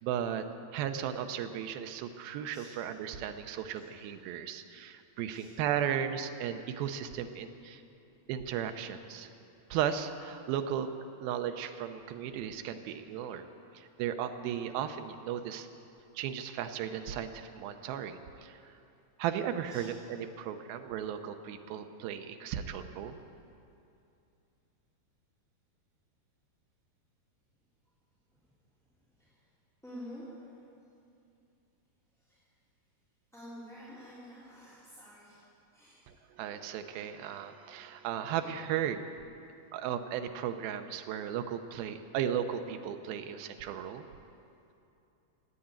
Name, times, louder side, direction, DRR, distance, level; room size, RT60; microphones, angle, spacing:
voice 1, 0.0-0.5 0.7-7.8 8.3-9.3 9.7-10.9 11.2-13.5 13.7-15.7 16.2-18.6 19.2-23.2 36.4-39.1 39.7-44.1, right 9 dB, 80° right, 8 dB, 2.4 m, -35 dB
voice 2, 28.3-29.5 29.8-30.9 32.1-32.5 33.3-35.4 35.7-36.3, equal, ahead, -11 dB, 2.2 m, -50 dB
16.5 x 9.1 x 8.8 m, 2.7 s
omnidirectional pair, 4.6 m